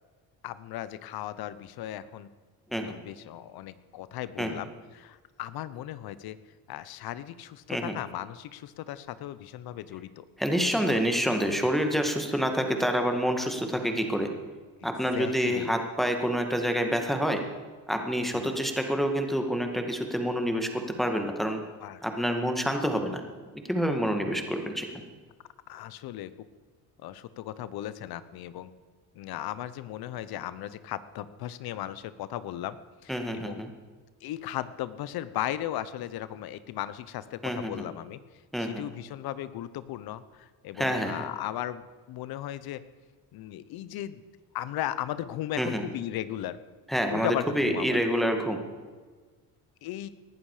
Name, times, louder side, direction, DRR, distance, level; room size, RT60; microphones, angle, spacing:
voice 1, 0.4-2.3 2.7-6.4 6.7-10.2 15.1-15.7 18.2-18.5 21.8-22.0 22.7-22.8 25.7-26.3 27.0-28.7 29.1-32.8 33.0-33.6 34.2-38.2 38.6-42.8 43.3-44.2 44.5-46.6 47.1-48.0 49.8-50.1, left 12 dB, 70° left, 15 dB, 0.9 m, -36 dB
voice 2, 10.4-14.3 14.8-17.4 17.9-21.6 22.0-23.2 23.7-24.9 33.1-33.7 37.4-37.8 38.5-38.8 40.8-41.2 45.6-45.8 46.9-48.6, equal, ahead, 4 dB, 2.0 m, -27 dB
19.0 x 11.5 x 5.0 m, 1.4 s
cardioid pair, 95°, 39 cm